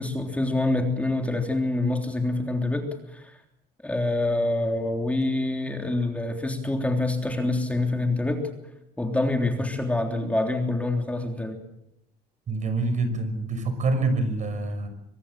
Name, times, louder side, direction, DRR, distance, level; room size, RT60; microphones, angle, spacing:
voice 1, 0.0-3.4 3.8-8.5 9.0-11.6, left 2 dB, 10° left, 3 dB, 3.4 m, -26 dB
voice 2, 12.5-14.9, right 3 dB, 45° right, 9 dB, 5.9 m, -26 dB
24.5 x 20.0 x 7.6 m, 0.82 s
cardioid pair, 110°, 17 cm